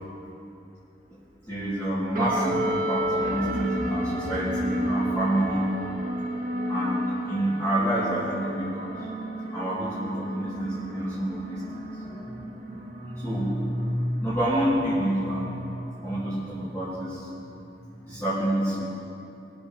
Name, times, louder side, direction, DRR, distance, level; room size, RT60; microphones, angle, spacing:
voice 1, 1.4-6.0 6.7-8.9 9.5-11.9 13.2-13.6 14.2-15.6 16.0-17.3 18.0-18.9, right 1 dB, 15° left, -12 dB, 3.0 m, -28 dB
sound 1, 2.1-16.9, right 1 dB, 50° right, 1.7 m, -32 dB
22.0 x 8.2 x 3.3 m, 2.7 s
head